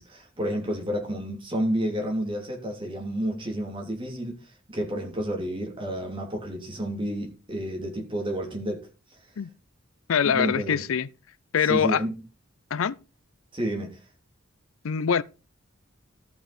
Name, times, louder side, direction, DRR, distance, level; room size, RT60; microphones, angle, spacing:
voice 1, 0.0-8.8 10.2-10.8 11.6-12.2 13.5-13.9, equal, 25° right, 2.9 m, -30 dB
voice 2, 10.1-11.1 11.5-12.0 12.7-13.0 14.8-15.2, left 7 dB, 80° left, 0.5 m, -23 dB
13.5 x 5.9 x 4.2 m
head